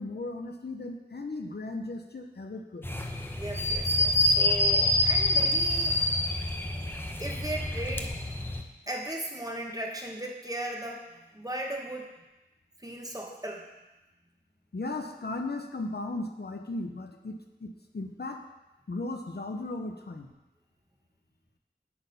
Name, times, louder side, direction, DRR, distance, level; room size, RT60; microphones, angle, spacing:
voice 1, 0.0-2.9 14.7-18.4 18.9-20.3, left 2 dB, 65° left, 5 dB, 0.7 m, -36 dB
sound 1, 2.8-8.6, left 1 dB, 10° left, 0.7 m, -26 dB
voice 2, 3.3-6.0 7.2-8.1 8.9-12.1 12.8-13.7, right 1 dB, 20° right, 0 dB, 1.2 m, -37 dB
8.7 x 4.1 x 5.3 m, 1.0 s
wide cardioid pair, 45°, 18 cm